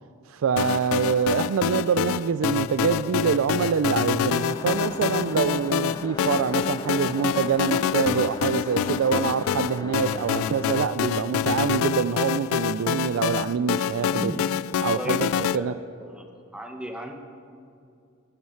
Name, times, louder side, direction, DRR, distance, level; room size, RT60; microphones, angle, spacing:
voice 1, 0.3-14.3 14.8-15.7, right 6 dB, 85° right, 11 dB, 0.4 m, -25 dB
sound 1, 0.6-15.6, left 9 dB, 90° left, 0.3 m, -26 dB
sound 2, 4.5-10.8, left 2 dB, 20° left, 0.4 m, -38 dB
voice 2, 14.1-14.5 14.9-15.7 16.0-16.3 16.5-17.2, equal, 5° right, 3 dB, 1.0 m, -35 dB
16.0 x 11.0 x 4.5 m, 2.5 s
head